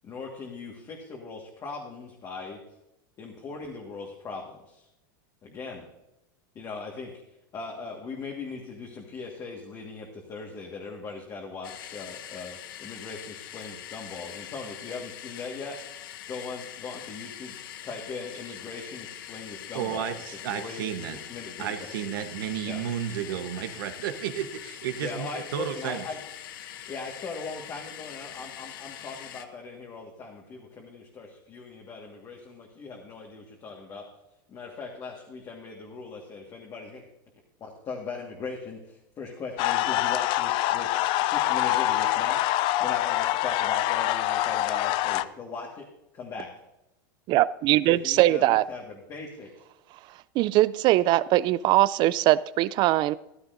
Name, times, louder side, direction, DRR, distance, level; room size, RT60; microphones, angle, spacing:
voice 1, 0.0-2.6 3.2-4.9 5.4-5.8 6.5-7.2 7.5-15.8 16.3-17.5 17.8-20.1 20.5-20.8 21.3-21.9 22.6-22.8 25.0-26.2 26.9-34.0 34.5-37.0 37.6-45.9 46.1-46.5 47.9-49.5, left 4 dB, 30° left, -1 dB, 1.7 m, -39 dB
sound 1, 11.6-29.5, left 11 dB, 75° left, 0.8 m, -43 dB
voice 2, 19.7-21.2 21.6-26.0, right 10 dB, 75° right, 9 dB, 1.1 m, -32 dB
sound 2, 39.6-45.2, left 15 dB, 45° left, 0.4 m, -25 dB
voice 3, 47.3-48.6 50.4-53.2, right 16 dB, 40° right, 19 dB, 0.4 m, -21 dB
14.5 x 11.5 x 2.6 m, 0.90 s
supercardioid pair, 125°, 12 cm